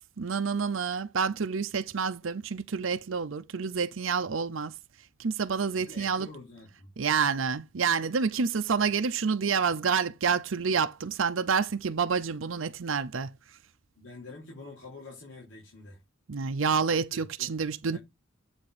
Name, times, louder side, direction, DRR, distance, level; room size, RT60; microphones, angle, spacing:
voice 1, 0.2-4.7 5.2-6.3 7.0-13.3 16.3-18.0, right 5 dB, 75° right, 0.6 m, -28 dB
voice 2, 5.7-6.9 14.0-16.0 17.1-17.5 17.9-18.0, left 3 dB, 70° left, 3.3 m, -47 dB
8.0 x 4.2 x 4.8 m
head